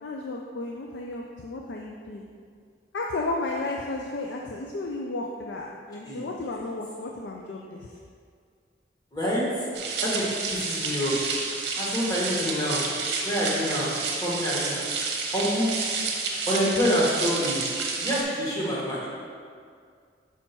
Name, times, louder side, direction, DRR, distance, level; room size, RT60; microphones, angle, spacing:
voice 1, 0.0-2.3 2.9-8.0, left 2 dB, 80° left, 0 dB, 0.4 m, -33 dB
voice 2, 9.1-9.7 10.0-11.2 11.8-12.8 13.2-13.9 14.2-14.8 15.3-15.7 16.5-17.6 18.0-19.1, equal, 20° left, -7 dB, 1.4 m, -27 dB
sound 1, 9.7-18.2, right 4 dB, 60° right, 0.9 m, -30 dB
5.6 x 4.3 x 4.5 m, 2.1 s
head